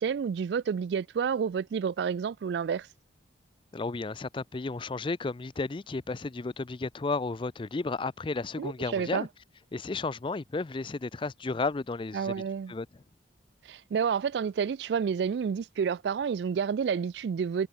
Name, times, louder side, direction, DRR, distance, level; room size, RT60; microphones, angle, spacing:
voice 1, 0.0-2.9 8.6-9.3 12.1-12.7 13.6-17.7, right 6 dB, 65° right, 0.3 m, -29 dB
voice 2, 3.7-9.3 9.7-12.3 12.7-12.9, left 3 dB, 30° left, 0.4 m, -33 dB
head